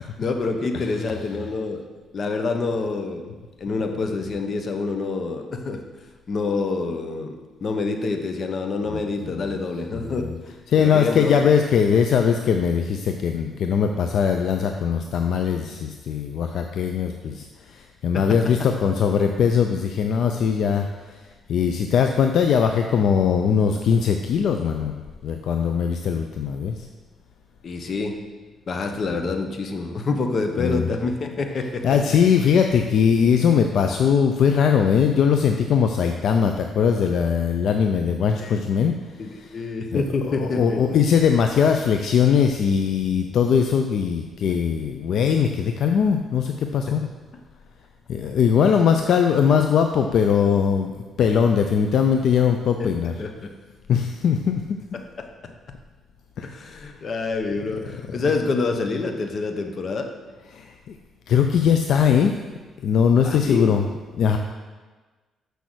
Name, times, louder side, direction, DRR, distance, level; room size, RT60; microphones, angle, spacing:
voice 1, 0.2-1.8 2.1-3.3 3.6-5.8 6.3-7.4 7.6-10.3 10.8-11.4 18.1-18.4 27.6-28.2 28.7-31.9 38.4-38.6 39.2-40.8 46.9-47.0 52.8-52.9 53.2-53.5 54.9-55.3 56.4-60.1 63.2-63.8, left 3 dB, 50° left, 5 dB, 1.1 m, -27 dB
voice 2, 9.9-10.3 10.7-20.9 21.5-26.7 30.6-30.9 31.8-38.9 39.4-39.5 39.9-47.0 48.1-50.9 51.2-53.1 53.9-54.6 56.4-56.5 60.5-60.7 61.3-62.3 62.8-63.8 64.2-64.4, left 7 dB, 70° left, 5 dB, 0.5 m, -20 dB
6.8 x 6.4 x 6.2 m, 1.3 s
cardioid pair, 90°, 0 cm